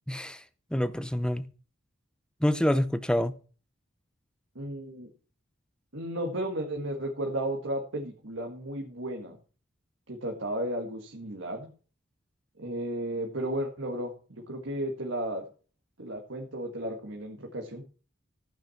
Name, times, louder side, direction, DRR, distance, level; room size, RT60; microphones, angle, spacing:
voice 1, 0.1-0.4 0.7-1.5 2.4-3.3, equal, 5° left, 0.6 m, -27 dB
voice 2, 4.6-5.1 5.9-9.4 10.1-11.7 12.6-15.5 16.0-17.8, right 1 dB, 75° right, 1.8 m, -34 dB
14.5 x 6.0 x 5.8 m
head